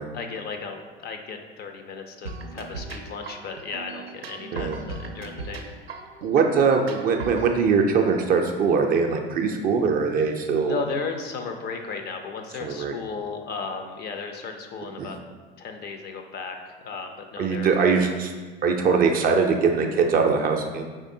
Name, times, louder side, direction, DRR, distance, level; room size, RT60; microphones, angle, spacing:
voice 1, 0.1-5.6 10.6-15.2 15.6-18.1, left 5 dB, 35° left, 5 dB, 0.5 m, -35 dB
sound 1, 2.2-7.5, right 3 dB, 90° right, 0.5 m, -38 dB
voice 2, 6.2-10.8 12.6-12.9 15.0-15.1 17.4-18.3 18.6-20.9, right 5 dB, 30° right, 3 dB, 0.4 m, -22 dB
5.1 x 3.6 x 2.6 m, 1.4 s
hypercardioid pair, 80°, 30 cm